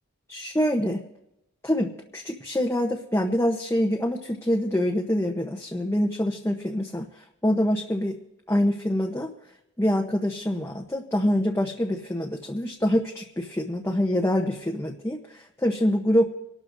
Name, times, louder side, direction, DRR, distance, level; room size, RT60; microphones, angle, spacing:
voice 1, 0.3-1.0 1.6-8.1 8.5-9.3 9.8-16.2, equal, 10° left, 0 dB, 0.9 m, -25 dB
27.5 x 12.5 x 2.7 m, 0.87 s
head